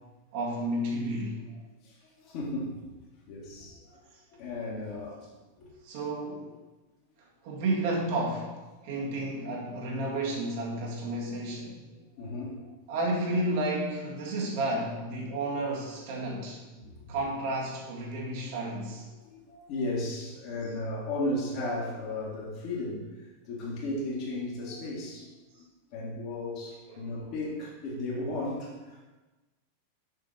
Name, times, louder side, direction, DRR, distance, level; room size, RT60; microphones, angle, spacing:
voice 1, 0.3-1.4 5.8-6.5 7.4-11.8 12.9-16.6 17.1-19.1 27.0-27.3, right 1 dB, 50° right, -2 dB, 2.0 m, -32 dB
voice 2, 1.8-2.8 3.3-5.3 5.6-5.7 8.8-9.0 11.7-12.7 16.7-17.1 18.9-25.7 25.9-29.0, left 2 dB, 50° left, -9 dB, 2.2 m, -36 dB
7.4 x 6.5 x 4.2 m, 1.2 s
figure-of-eight pair, 90°, 0 cm